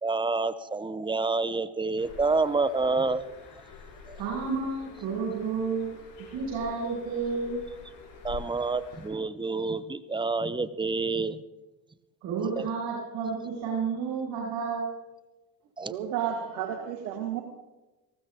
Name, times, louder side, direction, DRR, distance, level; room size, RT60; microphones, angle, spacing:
voice 1, 0.0-3.4 4.1-4.2 8.2-11.4 12.6-12.7 15.8-15.9, right 3 dB, 10° right, 15 dB, 0.7 m, -28 dB
Bird, 2.0-9.1, left 6 dB, 75° left, 6.4 m, -47 dB
voice 2, 4.2-6.0 6.3-7.6 12.2-14.9, right 5 dB, 60° right, -4 dB, 6.6 m, -31 dB
voice 3, 15.9-17.4, right 9 dB, 85° right, 3 dB, 1.6 m, -31 dB
19.0 x 15.0 x 3.7 m, 1.1 s
hypercardioid pair, 80°, 49 cm